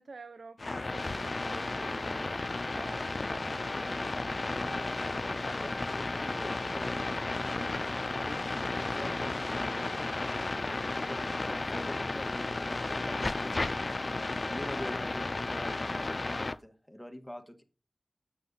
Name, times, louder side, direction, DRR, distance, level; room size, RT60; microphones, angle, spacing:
voice 1, 0.0-3.7, right 4 dB, 90° right, 0.4 m, -49 dB
sound 1, 0.6-16.6, left 2 dB, 50° left, 0.4 m, -33 dB
voice 2, 3.6-5.0 5.4-10.6 10.9-13.9 14.5-17.6, left 1 dB, 5° left, 1.4 m, -46 dB
8.4 x 6.6 x 3.9 m
wide cardioid pair, 55°, 0 cm